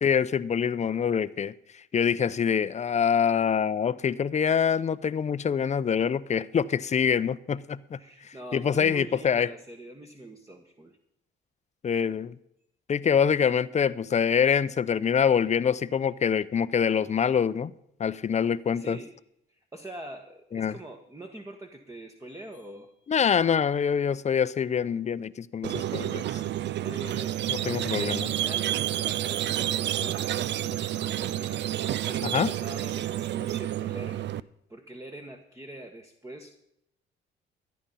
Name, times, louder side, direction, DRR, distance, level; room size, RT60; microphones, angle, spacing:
voice 1, 0.0-1.5 1.9-8.0 8.5-9.5 11.8-12.4 12.9-17.7 18.0-19.0 20.5-20.7 23.1-26.4 27.7-28.3 32.3-32.5, left 7 dB, 35° left, 0.6 m, -25 dB
voice 2, 8.0-11.0 18.4-19.2 19.5-23.1 26.8-34.4 34.7-36.6, right 1 dB, 15° right, 1.3 m, -44 dB
Squeak, 25.6-34.4, right 12 dB, 60° right, 0.5 m, -29 dB
13.5 x 10.5 x 5.5 m
cardioid pair, 90°, 20 cm